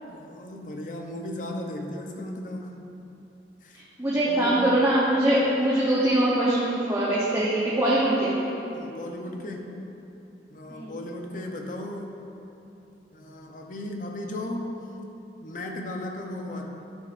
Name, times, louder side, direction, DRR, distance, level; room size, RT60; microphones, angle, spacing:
voice 1, 0.1-2.7 3.6-3.8 4.1-4.7 8.7-9.8 10.5-12.1 13.1-14.8 15.4-16.7, left 1 dB, 45° left, 2 dB, 0.7 m, -36 dB
voice 2, 4.0-8.3 10.7-10.9, right 1 dB, 15° right, -8 dB, 0.9 m, -22 dB
11.5 x 6.2 x 2.5 m, 2.9 s
head